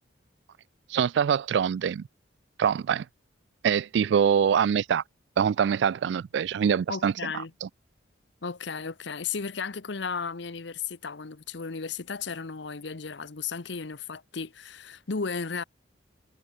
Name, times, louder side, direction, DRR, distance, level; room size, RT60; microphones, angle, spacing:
voice 1, 0.9-2.1 2.6-3.1 3.6-5.0 5.4-7.1 7.6-7.7, right 7 dB, 65° right, 0.3 m, -24 dB
voice 2, 6.9-7.5 8.4-15.6, left 5 dB, 65° left, 0.9 m, -34 dB
head